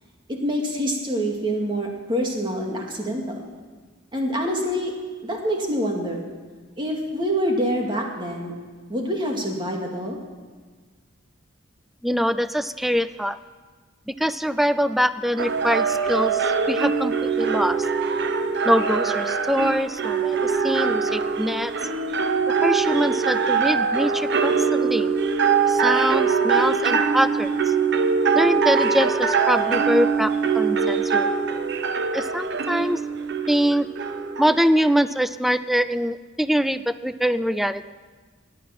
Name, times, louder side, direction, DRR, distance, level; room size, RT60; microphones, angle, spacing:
voice 1, 0.3-3.5 4.1-4.9 5.2-6.3 6.8-8.5 8.9-10.2, equal, 25° right, 0 dB, 2.3 m, -26 dB
voice 2, 12.0-13.4 14.1-17.9 18.6-21.7 22.6-25.1 25.7-27.7 28.3-31.3 32.1-33.0 33.5-33.9 34.4-37.9, equal, ahead, 14 dB, 0.4 m, -23 dB
sound 1, 15.4-34.9, right 5 dB, 60° right, 0.9 m, -23 dB
18.0 x 10.0 x 6.0 m, 1.4 s
head